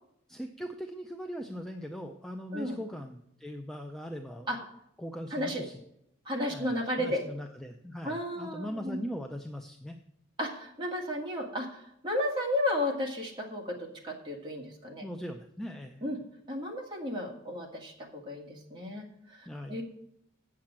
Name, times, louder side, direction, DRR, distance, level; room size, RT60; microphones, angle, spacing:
voice 1, 0.3-4.5 5.0-5.8 6.5-10.0 15.0-16.0 19.5-19.8, equal, ahead, 4 dB, 0.4 m, -40 dB
voice 2, 5.3-5.6 6.2-7.2 8.0-9.0 10.4-15.1 16.0-16.2 16.5-19.8, left 1 dB, 20° right, -1 dB, 1.8 m, -33 dB
7.7 x 7.4 x 7.4 m, 0.77 s
head